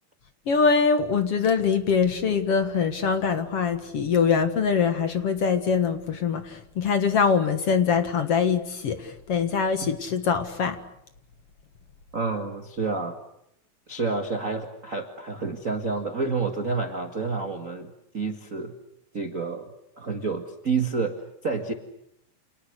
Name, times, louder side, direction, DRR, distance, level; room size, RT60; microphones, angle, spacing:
voice 1, 0.5-10.8, left 6 dB, 50° left, 9 dB, 2.0 m, -23 dB
voice 2, 12.1-13.2 13.9-18.7 19.1-21.7, right 4 dB, 35° right, 6 dB, 1.4 m, -29 dB
30.0 x 28.5 x 6.6 m, 0.78 s
omnidirectional pair, 4.4 m